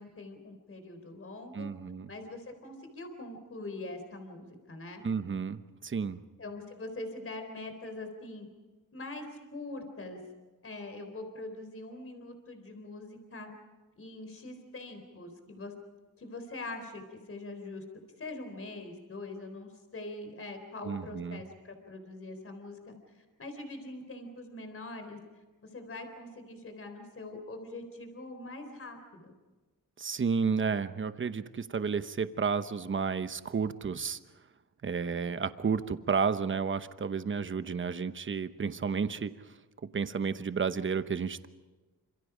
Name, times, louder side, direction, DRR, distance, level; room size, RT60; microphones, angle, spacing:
voice 1, 0.0-1.7 2.1-5.0 6.4-8.5 8.9-10.2 10.6-13.5 14.0-15.7 16.2-17.8 18.2-29.3, left 2 dB, 40° left, 6 dB, 4.0 m, -43 dB
voice 2, 1.5-2.1 5.0-6.2 20.8-21.4 30.0-34.2 34.8-39.3 39.9-41.5, right 5 dB, 35° right, 11 dB, 1.0 m, -31 dB
28.5 x 26.5 x 5.1 m, 1.2 s
wide cardioid pair, 130°, 35 cm